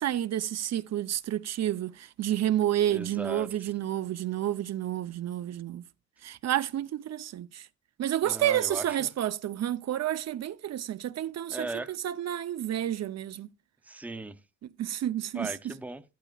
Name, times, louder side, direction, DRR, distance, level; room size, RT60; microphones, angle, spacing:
voice 1, 0.0-5.8 6.2-7.7 8.0-13.5 14.8-15.5, right 12 dB, 60° right, 0.6 m, -30 dB
voice 2, 2.9-3.7 8.2-9.1 11.5-12.0 13.8-14.4 15.3-16.0, right 2 dB, 5° right, 0.6 m, -38 dB
14.5 x 12.0 x 2.3 m
wide cardioid pair, 160°, 29 cm